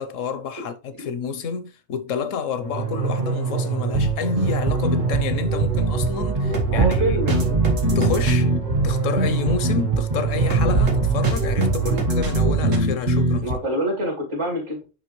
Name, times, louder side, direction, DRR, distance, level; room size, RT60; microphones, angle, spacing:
voice 1, 0.0-7.2 7.9-8.5 8.8-13.5, left 6 dB, 85° left, 1.2 m, -29 dB
sound 1, 2.6-12.8, right 5 dB, 90° right, 1.9 m, -24 dB
sound 2, 3.9-13.5, right 1 dB, 45° right, 1.4 m, -23 dB
voice 2, 6.6-7.6 11.8-12.0 13.4-14.8, right 1 dB, 70° right, 2.9 m, -26 dB
9.7 x 3.3 x 3.1 m
omnidirectional pair, 1.3 m